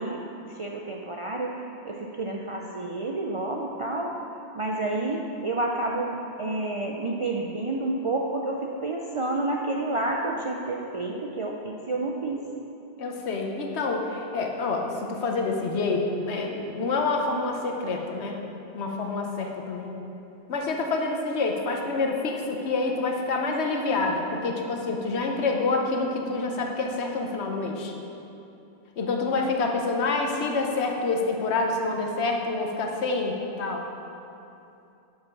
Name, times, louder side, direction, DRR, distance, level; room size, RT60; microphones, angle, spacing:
voice 1, 0.0-4.1 4.5-12.4, right 2 dB, 50° right, -1 dB, 0.3 m, -30 dB
voice 2, 13.0-18.4 18.7-19.9 20.5-27.9 29.0-33.8, left 3 dB, 80° left, 2 dB, 1.1 m, -27 dB
7.0 x 5.3 x 5.8 m, 2.8 s
omnidirectional pair, 1.1 m